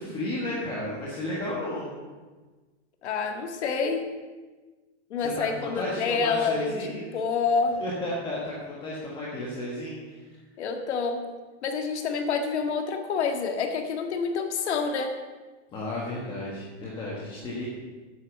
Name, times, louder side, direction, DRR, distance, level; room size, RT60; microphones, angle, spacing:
voice 1, 0.0-1.9 5.2-7.1 7.8-10.2 15.7-17.7, left 1 dB, 15° left, -5 dB, 1.3 m, -33 dB
voice 2, 3.0-4.0 5.1-7.8 10.6-11.2 11.6-15.1, left 5 dB, 70° left, 5 dB, 1.8 m, -27 dB
9.1 x 8.2 x 6.9 m, 1.3 s
supercardioid pair, 175°, 35 cm